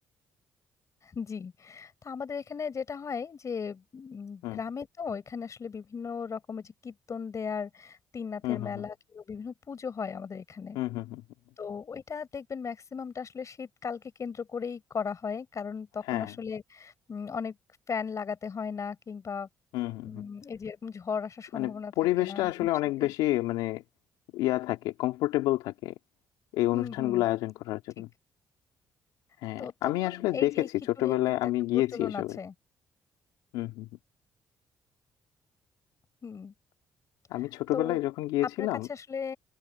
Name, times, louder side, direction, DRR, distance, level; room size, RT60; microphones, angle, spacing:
voice 1, 1.0-10.8 11.6-17.6 17.9-19.5 20.0-21.9 22.2-22.7 23.0-23.1 26.7-27.3 29.6-30.7 31.0-31.4 31.7-32.5 36.2-36.5 37.7-38.0 38.4-39.4, left 6 dB, 45° left, 4.3 m, -37 dB
voice 2, 8.4-8.8 10.7-11.2 16.1-16.3 19.7-20.3 21.5-23.8 24.3-25.9 26.5-28.1 29.4-32.4 33.5-33.9 37.3-38.9, left 16 dB, 85° left, 2.2 m, -29 dB
supercardioid pair, 60°, 7 cm